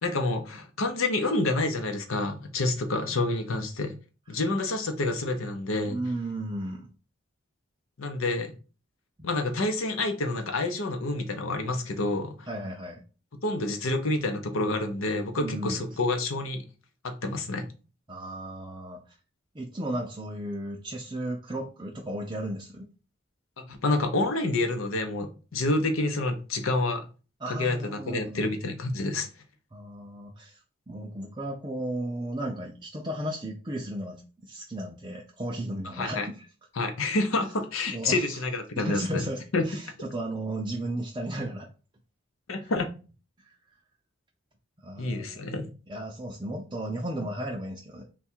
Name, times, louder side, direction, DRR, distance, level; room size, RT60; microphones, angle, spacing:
voice 1, 0.0-4.0 4.3-6.0 8.0-8.5 9.2-12.5 13.4-16.6 17.0-17.7 23.6-27.0 27.5-29.3 35.9-36.3 36.7-39.2 39.5-39.6 42.5-42.9 45.0-45.7, left 2 dB, 85° left, 0.7 m, -28 dB
voice 2, 5.8-6.9 9.2-9.3 12.5-13.0 15.4-15.8 18.1-19.0 19.5-22.9 27.4-28.5 29.7-30.6 30.9-36.5 37.9-38.4 38.8-41.7 42.6-42.7 44.8-45.2 45.9-48.0, right 1 dB, 20° right, 0.4 m, -34 dB
3.5 x 2.3 x 4.3 m
head